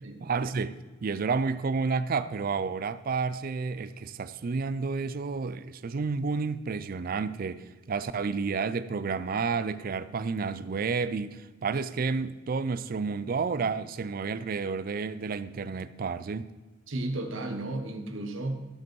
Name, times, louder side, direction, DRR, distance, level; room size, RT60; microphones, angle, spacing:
voice 1, 0.2-16.5, right 4 dB, 45° right, 15 dB, 0.4 m, -30 dB
voice 2, 16.9-18.6, right 2 dB, 75° right, 6 dB, 1.1 m, -33 dB
14.0 x 5.2 x 4.6 m, 1.3 s
head